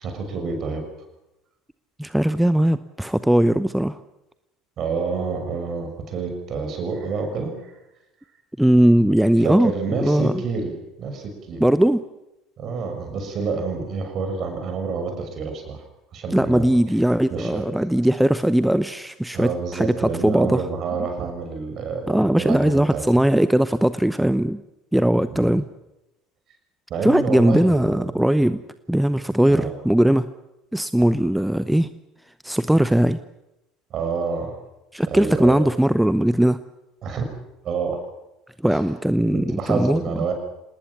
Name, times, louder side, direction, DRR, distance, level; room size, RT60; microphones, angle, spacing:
voice 1, 0.0-0.9 4.8-7.7 9.4-11.7 12.6-15.8 16.1-16.7 17.3-17.7 19.3-23.1 25.3-25.5 26.9-28.1 29.5-29.7 33.9-34.6 35.1-35.6 37.0-37.3 37.6-38.0 38.7-38.8 39.3-40.3, right 5 dB, 45° right, 5 dB, 6.6 m, -28 dB
voice 2, 2.0-4.0 8.6-9.7 10.0-10.3 11.6-12.0 16.3-20.6 22.1-24.6 24.9-25.6 27.0-28.6 28.9-30.3 30.7-31.9 32.4-33.2 34.9-36.6 38.6-40.0, right 1 dB, 5° right, 14 dB, 0.8 m, -19 dB
27.5 x 19.5 x 7.2 m, 0.92 s
figure-of-eight pair, 65°, 0 cm